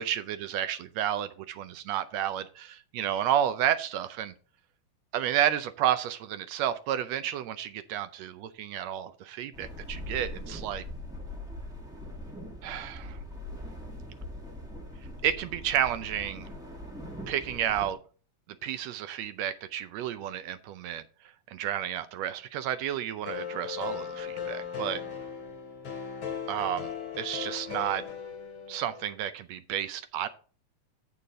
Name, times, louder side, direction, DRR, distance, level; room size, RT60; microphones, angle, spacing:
voice 1, 0.0-4.3 5.1-10.8 12.6-13.2 15.2-16.5 17.3-18.0 18.6-21.0 21.5-25.0 26.5-28.0 28.7-30.3, right 10 dB, 75° right, 12 dB, 1.6 m, -31 dB
sound 1, 9.5-17.9, left 1 dB, ahead, 0.8 m, -41 dB
sound 2, 23.3-29.1, left 7 dB, 45° left, 2.7 m, -37 dB
8.5 x 6.9 x 3.7 m, 0.39 s
omnidirectional pair, 3.4 m